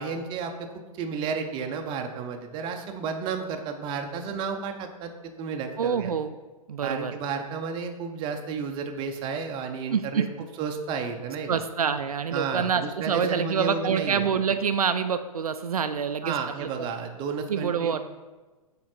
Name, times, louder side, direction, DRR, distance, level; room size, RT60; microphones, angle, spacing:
voice 1, 0.0-5.1 5.4-6.1 6.8-10.2 10.6-11.6 12.3-14.3 16.2-18.0, right 5 dB, 25° right, 5 dB, 0.7 m, -32 dB
voice 2, 5.8-6.4 6.7-7.2 9.9-10.3 11.5-16.4 16.6-16.7 17.5-18.0, right 6 dB, 75° right, 10 dB, 0.4 m, -26 dB
7.3 x 3.8 x 4.2 m, 1.2 s
figure-of-eight pair, 105°, 19 cm